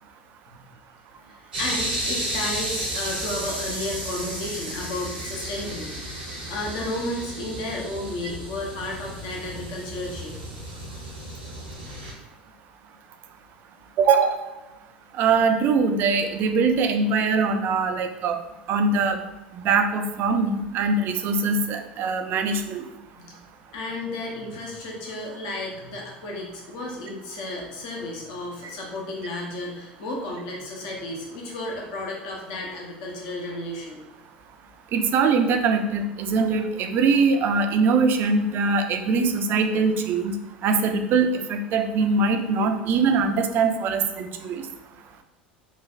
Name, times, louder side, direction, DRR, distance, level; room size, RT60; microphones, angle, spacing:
voice 1, 1.2-10.4 23.1-23.4 23.7-34.0, left 1 dB, 65° left, -1 dB, 0.7 m, -33 dB
sound 1, 1.5-12.1, right 1 dB, 85° right, 0.9 m, -33 dB
voice 2, 14.0-14.4 15.2-18.4 18.7-19.2 19.5-22.9 34.9-40.3 40.6-44.6, right 4 dB, 45° right, 6 dB, 0.3 m, -22 dB
3.2 x 2.2 x 2.4 m, 1.0 s
figure-of-eight pair, 75°, 5 cm